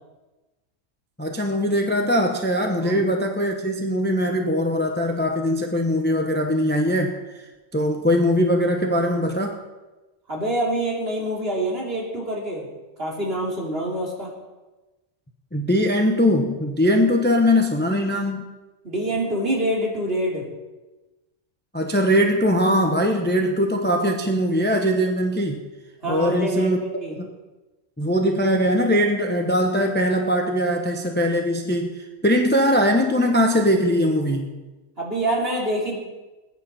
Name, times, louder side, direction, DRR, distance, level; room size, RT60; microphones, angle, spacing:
voice 1, 1.2-7.4 7.7-9.6 15.5-18.4 21.7-25.6 26.1-26.8 28.0-34.5, equal, 10° left, 3 dB, 0.9 m, -21 dB
voice 2, 10.3-12.7 13.0-14.3 18.8-20.4 26.0-27.2 35.0-36.0, right 1 dB, 45° right, -3 dB, 3.2 m, -26 dB
20.5 x 9.7 x 4.3 m, 1.1 s
omnidirectional pair, 1.4 m